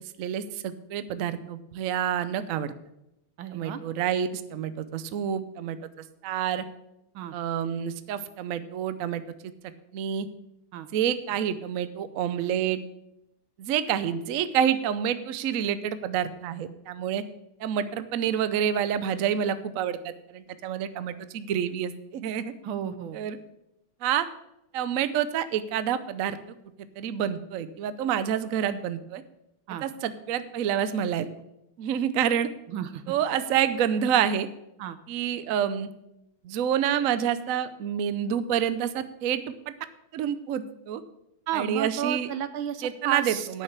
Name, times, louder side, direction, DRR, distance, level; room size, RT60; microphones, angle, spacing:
voice 1, 0.2-2.7 3.5-5.8 6.2-6.6 7.3-9.2 9.9-10.3 10.9-12.8 13.6-17.2 17.6-22.5 23.1-23.4 24.0-24.3 24.7-26.4 27.0-29.2 29.8-31.3 31.8-32.5 33.1-34.5 35.1-35.9 36.4-39.7 40.1-41.0 41.5-42.3 42.8-43.6, right 9 dB, 70° right, 13 dB, 0.8 m, -28 dB
voice 2, 3.4-3.8 7.1-7.3 10.7-10.9 22.6-23.2 29.7-29.8 32.7-33.0 34.8-35.0 41.5-43.5, right 9 dB, 85° right, 12 dB, 1.6 m, -32 dB
8.8 x 6.5 x 8.0 m, 0.86 s
omnidirectional pair, 2.2 m